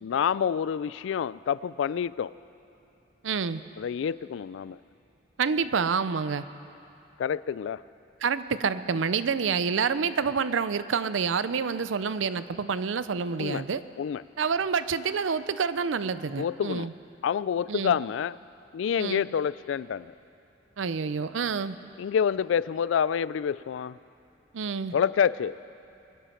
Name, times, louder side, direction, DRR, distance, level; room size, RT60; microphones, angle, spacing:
voice 1, 0.0-2.3 3.8-4.8 7.2-7.8 13.4-13.6 14.0-14.2 16.4-16.9 17.2-18.4 18.7-20.1 22.0-24.0 24.9-25.6, left 7 dB, 75° left, 19 dB, 0.3 m, -27 dB
voice 2, 3.2-3.6 5.4-6.4 8.2-13.8 14.4-16.9 17.7-18.0 19.0-19.2 20.8-21.8 24.5-24.9, right 5 dB, 85° right, 14 dB, 0.5 m, -28 dB
22.5 x 10.0 x 5.8 m, 2.9 s
head